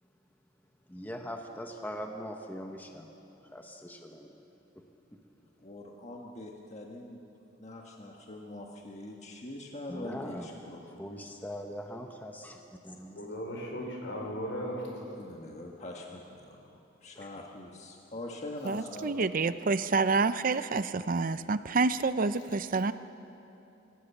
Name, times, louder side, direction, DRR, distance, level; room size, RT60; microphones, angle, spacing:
voice 1, 0.9-3.1 3.4-4.4 5.1-5.2 9.9-10.5 10.9-13.3 17.1-17.3, equal, 10° left, 3 dB, 1.0 m, -41 dB
voice 2, 5.6-7.2 7.6-11.0 15.2-19.5, left 1 dB, 40° left, 0 dB, 1.4 m, -43 dB
voice 3, 13.1-15.0, equal, 65° left, 0 dB, 4.9 m, -36 dB
voice 4, 18.6-22.9, right 4 dB, 45° right, 13 dB, 0.5 m, -28 dB
26.5 x 15.5 x 7.1 m, 2.9 s
head